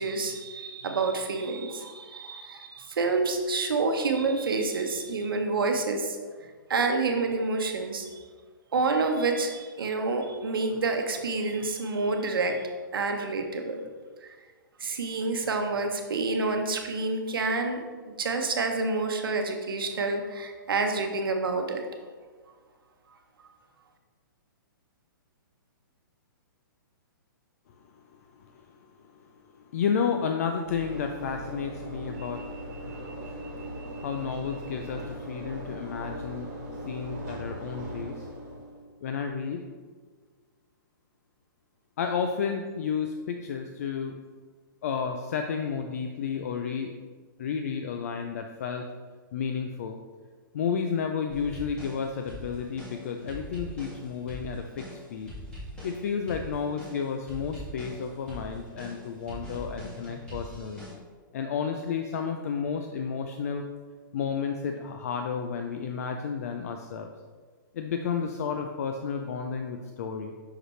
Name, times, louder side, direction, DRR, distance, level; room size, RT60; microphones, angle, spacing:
voice 1, 0.0-8.2 8.7-13.8 14.2-14.4 14.8-21.8, right 3 dB, 90° right, 4 dB, 0.9 m, -28 dB
voice 2, 28.4-32.9 33.2-33.4 34.0-36.6 36.8-38.3 39.0-39.7 42.0-44.2 44.8-47.0 47.4-48.9 49.3-50.0 50.5-55.3 55.8-60.9 61.3-63.7 64.1-67.1 67.7-70.3, left 6 dB, 45° left, 5 dB, 0.4 m, -32 dB
Train / Engine / Alarm, 30.6-38.9, equal, 35° right, 1.6 m, -39 dB
sound 1, 51.3-60.9, equal, 10° left, 1.7 m, -42 dB
5.9 x 5.3 x 3.2 m, 1.5 s
hypercardioid pair, 165°, 11 cm